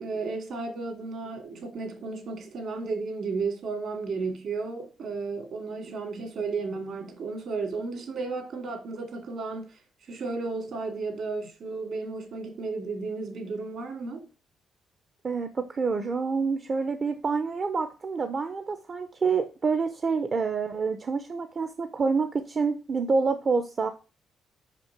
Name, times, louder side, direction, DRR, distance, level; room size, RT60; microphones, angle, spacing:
voice 1, 0.0-9.7 10.1-14.3, right 4 dB, 60° right, 2.4 m, -33 dB
voice 2, 15.2-23.9, right 4 dB, 35° right, 0.7 m, -27 dB
6.0 x 5.6 x 6.0 m
cardioid pair, 125°, 0 cm